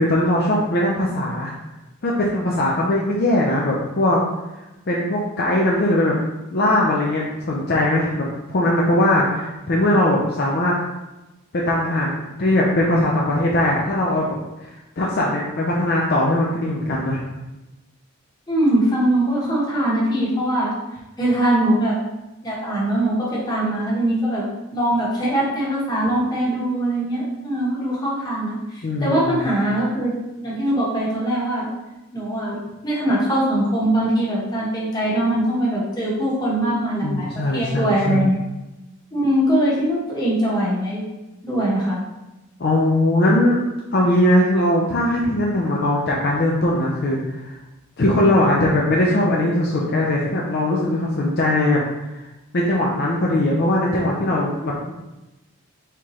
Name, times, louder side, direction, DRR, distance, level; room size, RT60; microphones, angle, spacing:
voice 1, 0.0-1.5 2.0-4.2 4.9-6.2 6.5-10.7 11.5-14.3 14.6-17.2 28.8-29.4 37.0-38.3 42.6-43.6 43.9-47.6 48.0-51.8 52.1-52.2 52.5-54.9, left 1 dB, 45° left, -3 dB, 0.5 m, -20 dB
voice 2, 18.5-20.7 21.2-22.0 22.4-24.4 24.7-30.1 30.4-31.7 32.1-32.6 32.8-37.3 37.5-38.4 39.1-41.0 41.4-42.0, right 1 dB, 15° left, -7 dB, 1.2 m, -21 dB
4.4 x 3.6 x 3.1 m, 1.0 s
head